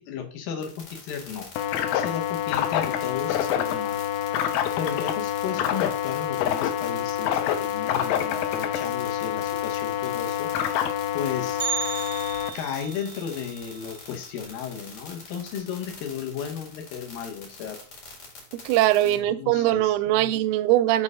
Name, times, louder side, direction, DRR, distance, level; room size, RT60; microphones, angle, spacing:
voice 1, 0.0-4.0 4.8-10.5 11.1-11.6 12.5-17.8 19.0-20.3, left 7 dB, 75° left, 2.5 m, -34 dB
sound 1, 0.6-19.1, left 5 dB, 50° left, 3.0 m, -44 dB
sound 2, 1.6-12.5, left 10 dB, 90° left, 2.6 m, -27 dB
Bell, 11.6-15.7 16.0-16.1 16.5-16.6 17.4-17.5 18.3-18.6 18.9-19.0, right 9 dB, 60° right, 1.2 m, -36 dB
voice 2, 18.5-21.0, right 15 dB, 85° right, 2.5 m, -21 dB
6.3 x 4.4 x 4.9 m
omnidirectional pair, 4.4 m